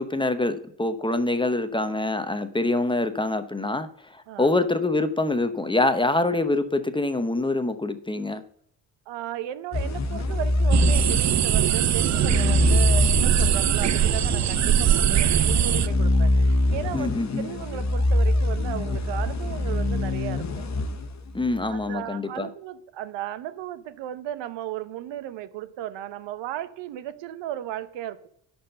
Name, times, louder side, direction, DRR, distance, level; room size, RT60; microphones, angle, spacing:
voice 1, 0.0-8.4 16.9-17.5 21.3-22.5, left 2 dB, 10° left, 10 dB, 0.9 m, -25 dB
voice 2, 9.1-17.1 17.4-20.6 21.7-28.3, right 12 dB, 75° right, 13 dB, 0.9 m, -35 dB
sound 1, 9.7-21.6, left 2 dB, 40° left, 1.3 m, -24 dB
sound 2, 10.7-15.9, right 10 dB, 40° right, 0.5 m, -22 dB
11.0 x 4.5 x 6.6 m, 0.68 s
cardioid pair, 90°, 43 cm